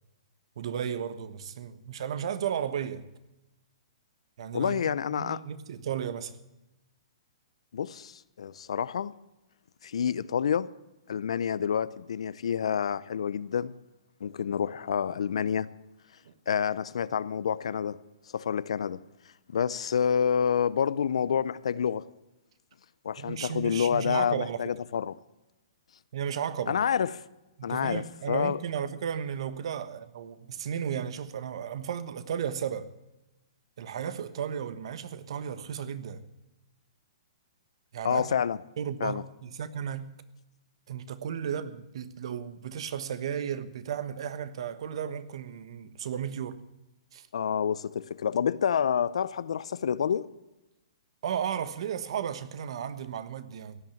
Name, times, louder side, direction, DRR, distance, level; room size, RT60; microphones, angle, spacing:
voice 1, 0.6-3.1 4.4-6.4 16.2-16.3 23.2-24.6 26.1-26.8 27.6-32.9 33.8-36.2 37.9-38.4 38.8-40.1 40.9-46.6 47.1-47.3 51.2-53.8, right 8 dB, 60° right, 1.2 m, -34 dB
voice 2, 4.5-5.4 7.7-9.1 9.8-10.7 11.1-13.7 14.2-15.7 16.5-18.0 18.3-19.0 19.5-22.1 23.0-25.2 26.7-27.2 27.6-28.6 38.0-38.6 39.0-39.2 47.3-50.3, left 7 dB, 75° left, 0.6 m, -28 dB
16.0 x 9.2 x 7.1 m
hypercardioid pair, 150°, 3 cm